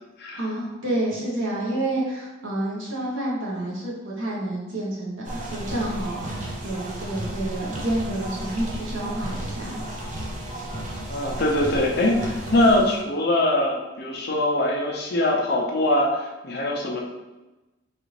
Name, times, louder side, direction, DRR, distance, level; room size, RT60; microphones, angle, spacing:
voice 1, 0.3-9.8, right 1 dB, 75° right, -4 dB, 1.0 m, -29 dB
sound 1, 5.2-13.0, right 1 dB, 40° right, 0.5 m, -33 dB
voice 2, 11.1-17.0, left 1 dB, 55° left, -1 dB, 0.5 m, -22 dB
3.2 x 2.5 x 3.1 m, 1.1 s
head